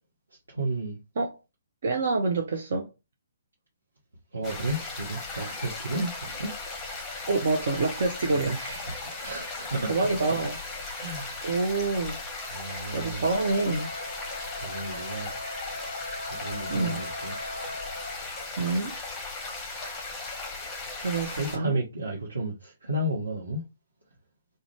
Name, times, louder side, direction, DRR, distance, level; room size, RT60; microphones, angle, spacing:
voice 1, 0.5-1.0 4.3-6.5 8.3-8.6 8.8-9.9 10.9-11.6 12.5-13.3 14.6-15.4 16.3-17.4 21.3-23.6, right 1 dB, 75° right, 0.9 m, -33 dB
voice 2, 1.8-2.9 5.9-6.1 7.3-8.8 9.9-10.5 11.4-12.2 12.9-13.9 16.7-17.0 18.6-18.9 21.0-21.7, right 3 dB, 50° right, 0.5 m, -27 dB
sound 1, 4.4-21.6, left 3 dB, 15° left, 0.7 m, -37 dB
Wind instrument woodwind instrument, 13.2-18.2, left 1 dB, 80° left, 0.4 m, -40 dB
2.4 x 2.1 x 3.1 m
figure-of-eight pair, 130°, 0 cm